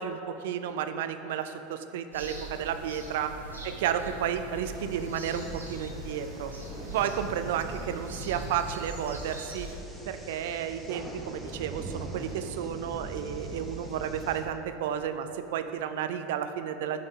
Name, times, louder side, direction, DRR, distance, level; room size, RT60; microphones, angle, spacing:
voice 1, 0.0-3.4 3.6-6.5 6.9-9.7 10.1-17.0, right 9 dB, 60° right, 9 dB, 0.3 m, -32 dB
sound 1, 2.1-9.7, right 2 dB, 85° right, 0.7 m, -42 dB
sound 2, 4.6-14.4, right 2 dB, ahead, 0.9 m, -42 dB
7.5 x 3.9 x 3.4 m, 2.8 s
figure-of-eight pair, 80°, 0 cm